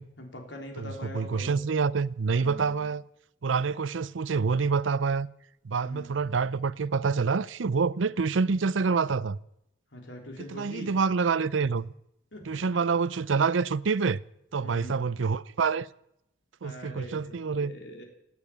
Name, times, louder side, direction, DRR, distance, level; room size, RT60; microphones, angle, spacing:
voice 1, 0.2-1.6 2.3-2.9 5.8-6.2 9.9-10.9 12.3-12.6 14.6-15.1 16.6-18.0, left 1 dB, 70° left, 3.8 m, -43 dB
voice 2, 0.8-3.0 3.4-5.3 5.6-9.4 10.5-11.9 12.5-14.2 14.5-15.9 16.6-17.7, right 5 dB, 85° right, 0.6 m, -27 dB
18.5 x 9.0 x 8.7 m
head